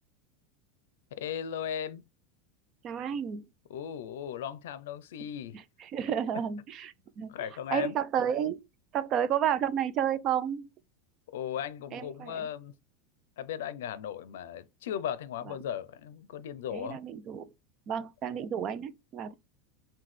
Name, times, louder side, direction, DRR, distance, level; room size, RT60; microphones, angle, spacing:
voice 1, 1.1-2.1 3.7-5.6 7.3-8.0 11.3-12.7 13.4-17.0, left 9 dB, 85° left, 0.5 m, -37 dB
voice 2, 2.8-3.4 5.8-7.3 7.7-8.6 8.9-10.7 11.9-12.5 16.7-17.5 17.9-19.3, right 9 dB, 35° right, 0.4 m, -31 dB
5.8 x 2.2 x 3.2 m
supercardioid pair, 155°, 0 cm